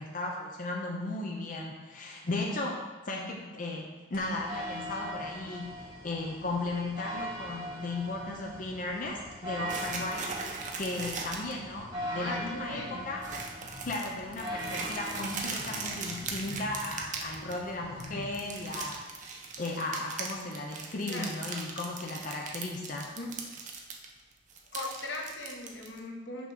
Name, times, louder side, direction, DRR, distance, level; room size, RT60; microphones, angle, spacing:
voice 1, 0.0-13.2 13.8-19.0 19.6-23.1, left 2 dB, 50° left, 0 dB, 0.7 m, -36 dB
sound 1, 4.1-19.0, equal, 30° right, 2.1 m, -41 dB
sound 2, 9.7-11.5 11.9-12.0 12.3-12.7 13.2-17.7 18.0-24.0 24.3-26.0, right 4 dB, 45° right, 0.8 m, -39 dB
voice 2, 12.1-13.2 21.1-21.4 23.2-23.4 24.7-26.5, left 2 dB, 85° left, 0 dB, 1.1 m, -39 dB
6.2 x 3.5 x 6.0 m, 1.2 s
head